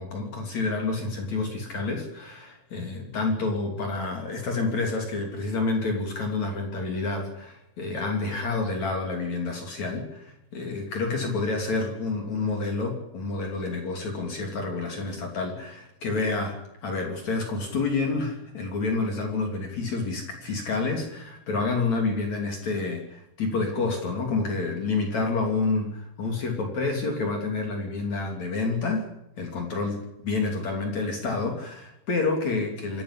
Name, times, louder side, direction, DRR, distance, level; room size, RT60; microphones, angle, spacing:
voice 1, 0.0-29.1 29.4-33.0, left 3 dB, 40° left, 2 dB, 3.6 m, -29 dB
27.5 x 11.0 x 10.0 m, 0.83 s
omnidirectional pair, 5.4 m